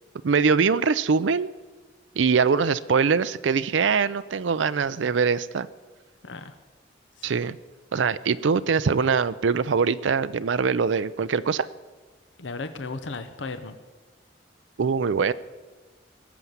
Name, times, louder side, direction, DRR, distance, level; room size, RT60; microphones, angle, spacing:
voice 1, 0.2-1.5 2.2-5.7 7.2-7.6 7.9-11.7 14.8-15.3, right 5 dB, 85° right, 13 dB, 0.5 m, -23 dB
voice 2, 6.2-6.5 7.2-7.3 12.4-13.8, left 3 dB, 85° left, 10 dB, 0.9 m, -35 dB
19.5 x 7.1 x 9.4 m, 1.3 s
head